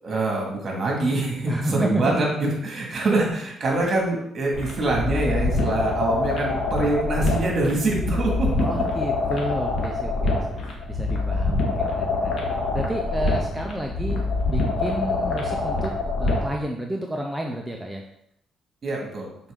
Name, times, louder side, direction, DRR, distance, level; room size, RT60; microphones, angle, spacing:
voice 1, 0.0-8.5 18.8-19.3, right 2 dB, 45° right, -1 dB, 2.3 m, -24 dB
voice 2, 1.4-2.2 8.5-10.6 10.9-15.9 16.2-18.0, right 1 dB, 5° right, 1 dB, 0.6 m, -30 dB
sound 1, 4.5-16.5, left 3 dB, 55° left, 1.6 m, -25 dB
6.0 x 4.6 x 3.8 m, 0.77 s
cardioid pair, 90°, 0 cm